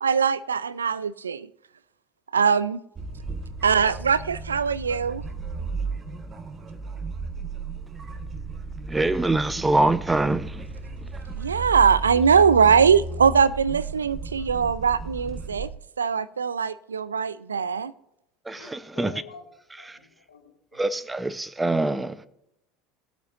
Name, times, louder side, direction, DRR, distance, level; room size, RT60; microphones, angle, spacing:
voice 1, 0.0-1.5 2.3-2.8 3.6-5.2 11.4-15.7 16.0-17.9, right 6 dB, 80° right, 0.4 m, -21 dB
sound 1, 3.0-15.7, right 4 dB, 25° right, 1.4 m, -34 dB
voice 2, 8.9-10.7 18.5-19.1 19.9-20.0 20.8-22.3, right 2 dB, 10° right, 0.7 m, -24 dB
voice 3, 18.5-19.5 19.8-20.8, left 6 dB, 80° left, 1.8 m, -46 dB
19.0 x 8.9 x 2.5 m
figure-of-eight pair, 70°, 0 cm